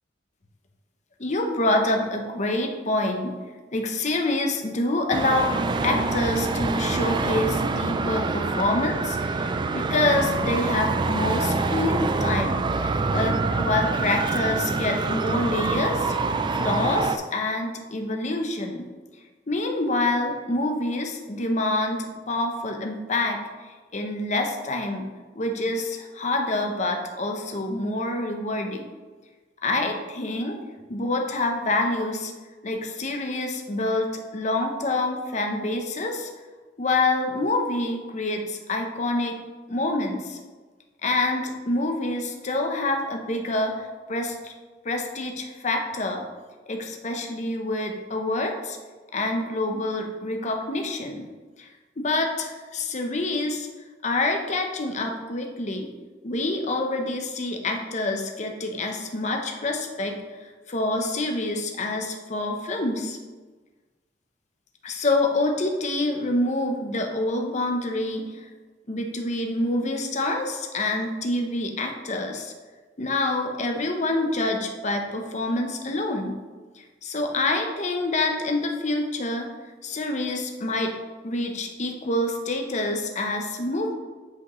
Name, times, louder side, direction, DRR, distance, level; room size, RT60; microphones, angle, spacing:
voice 1, 1.2-3.4 3.7-5.5 5.8-16.1 16.5-18.9 19.5-23.4 23.6-25.1 25.4-28.9 29.6-30.6 30.9-32.3 32.6-36.3 36.8-39.4 39.7-40.4 41.0-44.5 44.8-46.2 46.7-48.8 49.1-51.2 51.6-51.7 52.0-53.7 54.0-55.9 56.2-63.2 64.8-68.5 68.9-72.5 73.0-76.4 76.8-79.5 79.8-80.9 81.2-83.9, left 2 dB, 40° left, 3 dB, 0.8 m, -27 dB
Traffic noise roadway noise, 5.1-17.2, right 3 dB, 25° right, 0.3 m, -26 dB
8.3 x 5.0 x 3.1 m, 1.3 s
head